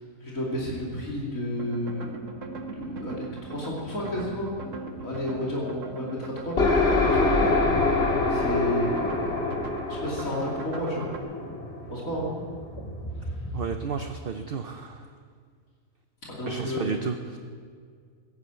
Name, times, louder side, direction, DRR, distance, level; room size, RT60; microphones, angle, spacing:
voice 1, 0.2-2.1 2.8-4.6 5.0-7.9 8.3-9.6 9.9-11.1 11.9-12.3 16.3-16.9, left 1 dB, 80° left, -5 dB, 3.2 m, -32 dB
sound 1, 1.6-11.2, right 3 dB, 70° right, 1.6 m, -40 dB
sound 2, 3.8-4.7 5.1-5.2 5.9-13.8, left 1 dB, 20° left, 1.4 m, -40 dB
sound 3, 6.6-12.2, left 3 dB, 50° left, 2.6 m, -25 dB
voice 2, 13.5-15.1 16.5-17.4, right 5 dB, 50° right, 6 dB, 0.9 m, -32 dB
16.0 x 11.0 x 8.2 m, 2.1 s
omnidirectional pair, 1.4 m